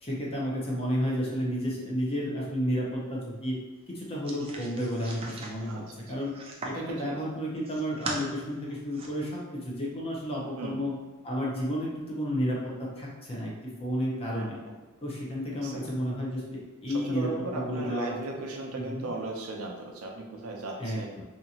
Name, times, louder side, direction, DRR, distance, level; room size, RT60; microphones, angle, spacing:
voice 1, 0.0-3.6 3.9-5.8 6.1-6.3 6.6-9.3 9.6-10.9 11.2-13.5 13.8-14.6 15.0-17.3 17.5-18.1 18.7-19.1 20.8-21.2, equal, 30° left, -4 dB, 0.6 m, -31 dB
sound 1, 4.2-6.9 7.4-8.2 8.7-9.1, right 2 dB, 25° right, 0.4 m, -39 dB
voice 2, 6.7-7.2 10.6-10.9 14.3-14.8 15.6-15.8 16.9-21.2, right 2 dB, 85° right, 1 dB, 0.5 m, -37 dB
2.7 x 2.4 x 2.8 m, 1.2 s
head